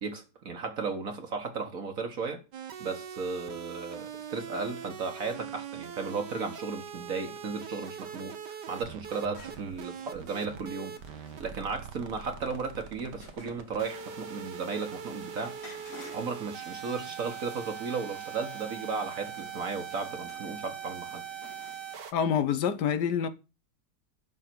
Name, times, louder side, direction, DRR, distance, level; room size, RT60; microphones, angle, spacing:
voice 1, 0.0-2.4 2.8-15.6 16.1-21.2, right 4 dB, 55° right, 1.6 m, -35 dB
sound 1, 2.5-22.1, right 8 dB, 80° right, 1.7 m, -42 dB
sound 2, 9.3-22.0, left 2 dB, 55° left, 2.5 m, -54 dB
voice 2, 22.1-23.3, left 8 dB, 80° left, 1.4 m, -26 dB
11.0 x 3.8 x 7.6 m
omnidirectional pair, 1.8 m